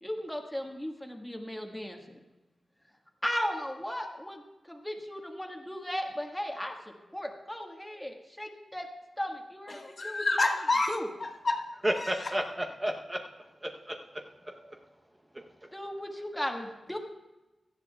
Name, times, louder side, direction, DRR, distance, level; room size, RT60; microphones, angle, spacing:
voice 1, 0.0-2.2 3.2-8.9 9.2-10.5 10.9-11.1 15.7-17.0, equal, 5° left, 2 dB, 1.5 m, -36 dB
voice 2, 9.7-11.6 11.9-12.3, left 2 dB, 45° left, 3 dB, 1.2 m, -29 dB
voice 3, 11.8-13.2 13.6-14.0 14.5-14.8, equal, 15° right, 2 dB, 0.8 m, -32 dB
17.0 x 13.0 x 2.3 m, 1.1 s
wide cardioid pair, 100°, 0 cm